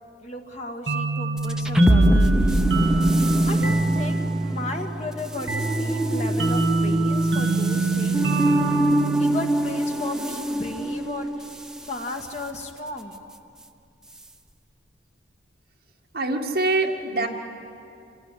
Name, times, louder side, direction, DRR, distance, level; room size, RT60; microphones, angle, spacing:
voice 1, 0.2-2.4 3.5-8.3 9.2-11.5 11.9-13.2, left 2 dB, 40° left, 3 dB, 1.9 m, -35 dB
sound 1, 0.9-10.2, right 3 dB, 70° right, 2.1 m, -25 dB
space impact, 1.4-11.9, equal, 5° right, 0.8 m, -24 dB
voice 2, 16.1-17.3, right 2 dB, 55° right, 0 dB, 2.1 m, -24 dB
27.0 x 16.5 x 9.9 m, 2.6 s
head